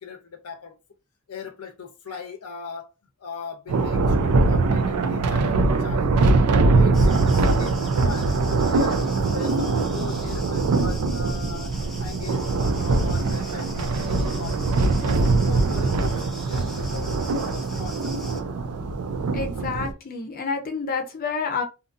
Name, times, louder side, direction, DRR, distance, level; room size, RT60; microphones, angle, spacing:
voice 1, 0.0-0.7 1.3-2.9 3.2-6.4 6.7-8.3 8.7-14.6 15.0-18.2, left 5 dB, 90° left, 0.6 m, -39 dB
Thunder, 3.7-19.9, right 3 dB, 85° right, 0.4 m, -22 dB
sound 1, 6.9-18.4, equal, ahead, 0.7 m, -40 dB
voice 2, 19.3-21.6, left 5 dB, 40° left, 0.6 m, -29 dB
2.7 x 2.5 x 2.5 m
head